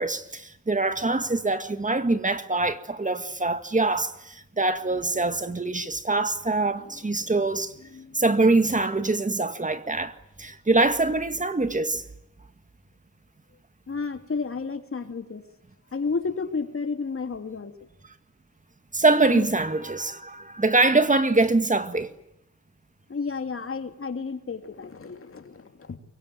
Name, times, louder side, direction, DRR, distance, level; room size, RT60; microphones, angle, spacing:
voice 1, 0.0-7.7 8.1-12.0 18.9-22.1, right 2 dB, 25° right, 1.9 m, -24 dB
voice 2, 6.8-7.5 7.9-8.2 8.7-8.8 13.9-15.4 15.9-17.7 19.3-19.5 23.1-26.0, left 4 dB, 45° left, 2.8 m, -32 dB
24.5 x 23.5 x 9.4 m
wide cardioid pair, 120°, 30 cm